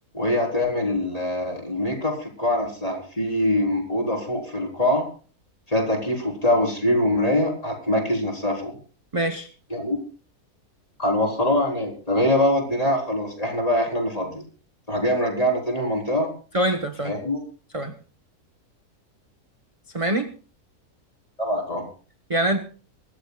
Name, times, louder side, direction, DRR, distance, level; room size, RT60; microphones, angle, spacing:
voice 1, 0.1-5.0 5.7-8.7 9.7-10.0 11.0-14.4 14.9-16.3 17.0-17.4 21.4-21.9, left 1 dB, 25° left, 1 dB, 4.1 m, -23 dB
voice 2, 9.1-9.5 16.5-17.2 17.7-17.9 19.9-20.3 22.3-22.6, right 1 dB, 25° right, 7 dB, 1.0 m, -24 dB
24.5 x 13.5 x 2.3 m, 0.39 s
omnidirectional pair, 1.6 m